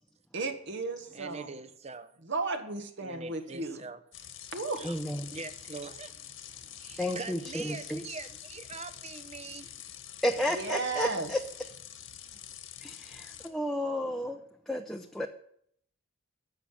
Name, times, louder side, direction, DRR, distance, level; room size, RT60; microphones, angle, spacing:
voice 1, 0.3-1.5 2.2-3.8 4.5-4.8 10.5-11.3, right 3 dB, 60° right, 1.7 m, -34 dB
voice 2, 1.1-2.2 3.0-4.0 4.8-5.0 5.3-6.1 6.8-9.7, right 4 dB, 30° right, 1.0 m, -43 dB
sound 1, 4.1-13.5, left 10 dB, 70° left, 1.6 m, -46 dB
voice 3, 4.8-5.2 7.0-8.0 10.2-11.4 12.8-14.4 14.7-15.3, equal, ahead, 0.7 m, -32 dB
14.5 x 5.8 x 10.0 m
head